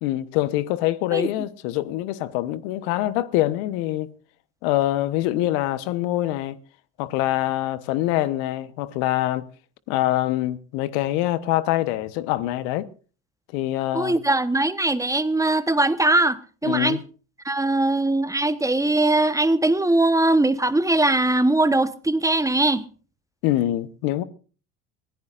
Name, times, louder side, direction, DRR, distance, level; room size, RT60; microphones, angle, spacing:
voice 1, 0.0-4.1 4.6-6.6 7.0-9.4 9.9-12.9 13.5-14.2 16.6-17.0 23.4-24.2, left 15 dB, 75° left, 1.1 m, -24 dB
voice 2, 13.9-17.0 17.4-22.8, right 2 dB, 10° right, 1.1 m, -21 dB
24.0 x 16.5 x 2.5 m
hypercardioid pair, 80°, 34 cm